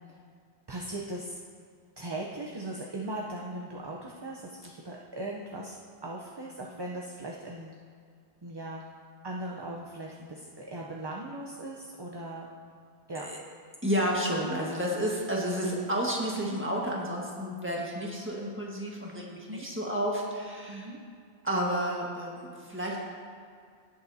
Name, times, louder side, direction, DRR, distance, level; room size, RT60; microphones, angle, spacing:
voice 1, 0.7-1.4 2.0-7.7 8.4-8.8 9.2-12.5 13.1-13.3 15.6-15.7 19.5-19.7 20.7-21.0, right 1 dB, 30° right, -2 dB, 0.6 m, -39 dB
voice 2, 13.8-20.9 21.4-23.1, equal, 10° right, -3 dB, 1.5 m, -31 dB
18.0 x 6.8 x 2.7 m, 2.2 s
omnidirectional pair, 1.1 m